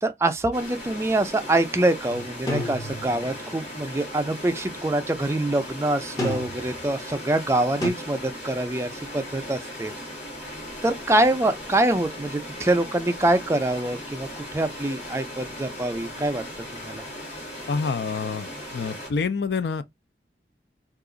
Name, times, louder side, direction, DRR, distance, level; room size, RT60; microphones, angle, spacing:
voice 1, 0.0-9.9 10.8-16.4 16.9-17.0, right 2 dB, 15° right, 0.3 m, -25 dB
sound 1, 0.5-19.1, left 1 dB, 40° left, 1.5 m, -38 dB
sound 2, 2.5-3.4 6.2-6.8 7.8-7.9, left 1 dB, 20° left, 0.8 m, -30 dB
voice 2, 17.7-19.8, left 5 dB, 75° left, 0.4 m, -27 dB
2.9 x 2.4 x 3.6 m
head